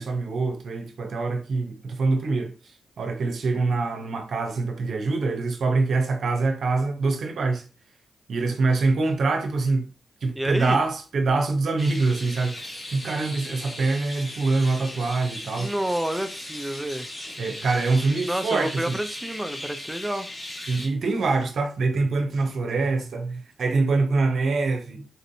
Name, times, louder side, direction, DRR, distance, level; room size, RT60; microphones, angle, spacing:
voice 1, 0.0-2.5 3.0-7.6 8.3-9.9 10.2-12.6 12.9-15.7 17.4-19.0 20.7-25.1, right 3 dB, 70° right, 0.7 m, -24 dB
voice 2, 10.3-10.8 15.6-17.1 18.2-20.3, right 1 dB, 10° right, 0.5 m, -29 dB
sound 1, 11.8-20.9, left 1 dB, 30° left, 2.0 m, -38 dB
4.2 x 2.5 x 2.7 m
supercardioid pair, 45°, 0 cm